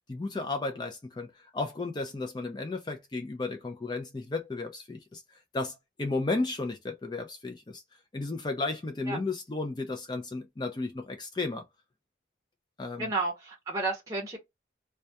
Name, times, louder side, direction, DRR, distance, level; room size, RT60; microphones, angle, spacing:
voice 1, 0.1-1.3 1.5-5.2 5.5-7.8 8.1-11.6 12.8-13.1, left 3 dB, 25° left, 0.3 m, -33 dB
voice 2, 13.0-14.4, right 3 dB, 20° right, 0.6 m, -31 dB
2.2 x 2.2 x 2.7 m
head